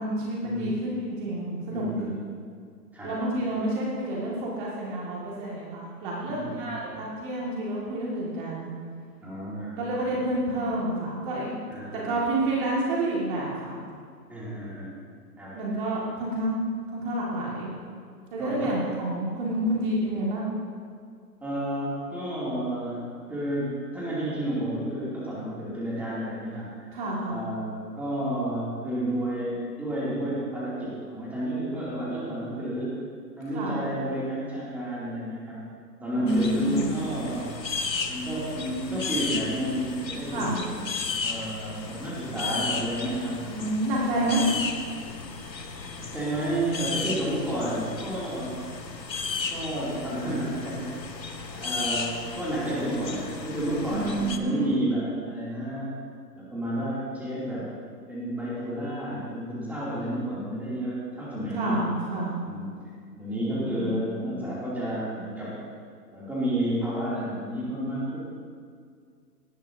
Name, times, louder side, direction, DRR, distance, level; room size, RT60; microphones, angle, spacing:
voice 1, 0.0-2.1 3.0-8.7 9.8-11.5 11.9-13.8 15.5-16.6 16.9-17.7 18.3-20.5 26.9-27.4 33.5-33.8 36.1-36.9 40.3-40.6 43.5-44.4 53.9-54.7 61.5-62.3 63.4-64.1, right 1 dB, 30° right, -5 dB, 2.1 m, -29 dB
voice 2, 1.7-2.2 2.9-3.5 6.3-6.7 9.2-10.1 11.7-12.1 14.3-14.9 15.4-15.5 18.4-18.7 21.4-27.0 27.2-32.9 33.4-35.6 36.0-37.5 38.1-40.7 41.2-43.4 44.1-44.4 46.0-48.6 49.5-50.9 51.5-55.9 56.4-57.6 58.1-61.7 62.4-62.7 63.2-65.5 66.1-68.2, right 1 dB, 5° right, -8 dB, 2.7 m, -31 dB
sound 1, 36.3-54.4, left 4 dB, 90° left, 1.2 m, -34 dB
18.5 x 12.0 x 2.8 m, 2.1 s
figure-of-eight pair, 140°, 50 cm